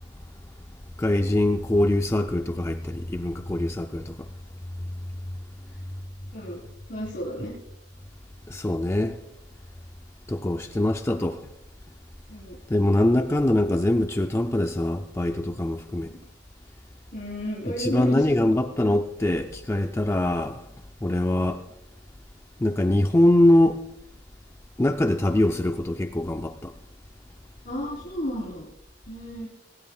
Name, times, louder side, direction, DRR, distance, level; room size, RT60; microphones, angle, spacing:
voice 1, 1.0-4.2 8.5-9.2 10.3-11.4 12.7-16.1 17.8-20.6 21.0-21.6 22.6-23.8 24.8-26.7, left 1 dB, 15° left, 0.4 m, -23 dB
voice 2, 6.9-7.5 12.3-12.6 16.0-16.2 17.1-18.4 27.6-28.7 29.1-29.5, equal, 50° left, 3.8 m, -33 dB
19.0 x 18.0 x 2.4 m
head